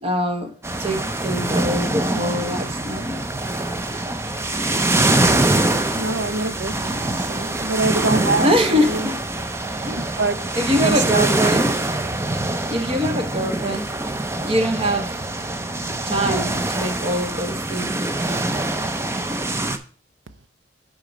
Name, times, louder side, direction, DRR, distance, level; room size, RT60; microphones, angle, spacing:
voice 1, 0.0-0.5 0.8-3.2 8.3-9.2 9.8-10.1 10.6-11.7 12.7-13.9 14.4-15.2 16.1-18.0, equal, 30° right, 1.0 m, -23 dB
sound 1, 0.6-19.8, right 2 dB, 15° right, 0.5 m, -24 dB
voice 2, 6.0-9.1 9.9-11.4, right 3 dB, 75° right, 0.7 m, -25 dB
8.4 x 4.0 x 5.0 m
head